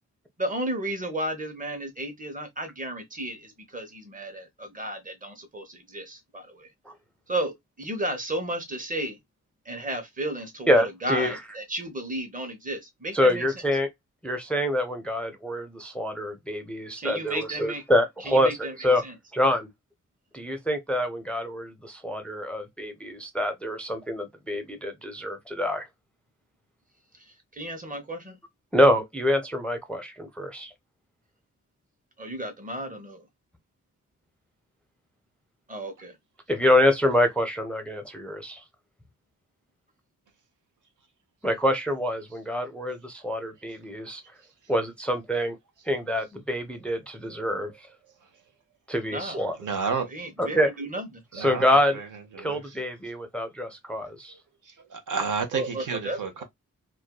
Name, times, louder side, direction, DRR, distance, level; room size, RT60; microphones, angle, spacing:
voice 1, 0.4-6.7 7.3-9.2 9.6-13.5 17.0-17.8 18.2-19.1 27.2-28.4 32.2-33.2 35.7-36.2 49.1-49.4 50.1-51.2 55.5-56.4, right 1 dB, 25° right, 0.9 m, -33 dB
voice 2, 10.7-11.4 13.1-13.9 14.2-19.0 19.3-19.7 20.3-25.9 28.7-30.7 36.5-38.6 41.4-44.2 44.7-45.6 45.9-47.9 48.9-49.6 50.4-50.7 51.3-52.0 52.4-54.3, left 1 dB, 5° left, 0.5 m, -26 dB
voice 3, 49.6-50.1 51.3-51.7 51.9-52.1 52.3-52.6 54.7-56.4, right 5 dB, 70° right, 0.8 m, -31 dB
2.5 x 2.3 x 2.2 m
cardioid pair, 70°, 31 cm